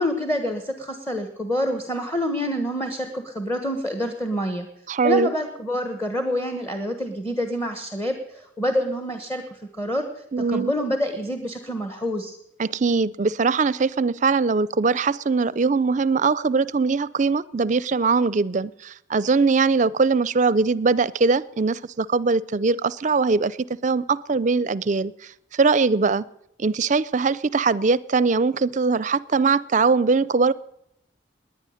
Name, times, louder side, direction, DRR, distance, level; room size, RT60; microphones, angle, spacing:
voice 1, 0.0-4.7 5.0-9.4 9.7-10.1 10.5-12.4, equal, 15° left, 6 dB, 1.2 m, -27 dB
voice 2, 4.9-5.3 10.3-10.7 12.6-23.6 23.8-25.1 25.5-26.2 26.6-30.5, right 4 dB, 40° right, 20 dB, 0.5 m, -21 dB
19.5 x 10.5 x 6.5 m, 0.75 s
head